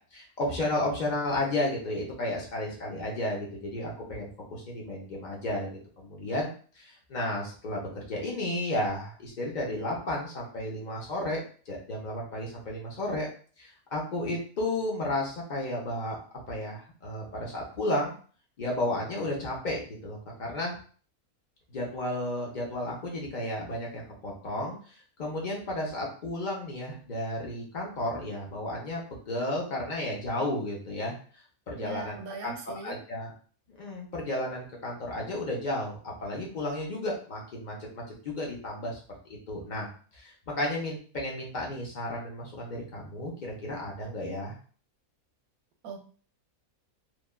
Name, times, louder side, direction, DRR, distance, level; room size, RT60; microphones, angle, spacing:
voice 1, 0.1-13.3 13.6-16.2 16.5-18.1 18.6-20.7 21.7-31.1 31.7-32.2 32.4-32.5 32.8-33.3 33.8-39.0 39.5-39.9 40.1-44.5, left 1 dB, 45° left, -3 dB, 0.7 m, -33 dB
voice 2, 31.8-33.0 45.8-46.0, right 5 dB, 75° right, 4 dB, 1.0 m, -40 dB
3.0 x 2.3 x 2.2 m, 0.42 s
omnidirectional pair, 1.5 m